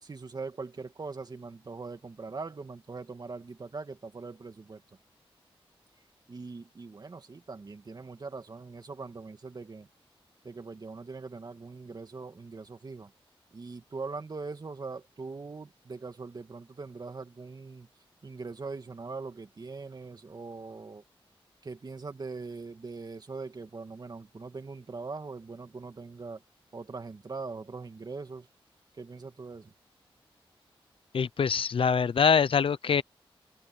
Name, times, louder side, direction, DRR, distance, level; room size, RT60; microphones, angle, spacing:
voice 1, 0.0-4.8 6.3-9.9 10.4-13.1 13.5-17.9 18.2-21.0 21.6-26.4 26.7-28.5 29.0-29.7, right 4 dB, 45° right, 2.3 m, -41 dB
voice 2, 31.1-33.0, left 6 dB, 70° left, 0.7 m, -24 dB
open air
wide cardioid pair, 100°, 10 cm